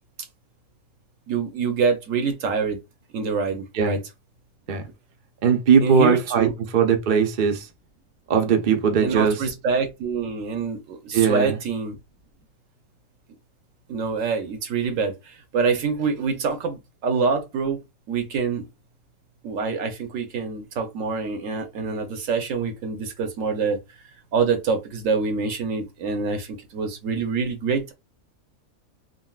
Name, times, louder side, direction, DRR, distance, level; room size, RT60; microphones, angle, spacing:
voice 1, 1.3-2.8 3.1-4.0 5.8-6.5 9.0-12.0 13.9-17.8 18.1-18.7 19.4-23.8 24.3-27.9, right 5 dB, 70° right, 1.1 m, -25 dB
voice 2, 5.4-7.7 8.3-9.4 11.1-11.6, right 7 dB, 50° right, 0.6 m, -20 dB
3.8 x 2.2 x 2.3 m
omnidirectional pair, 1.4 m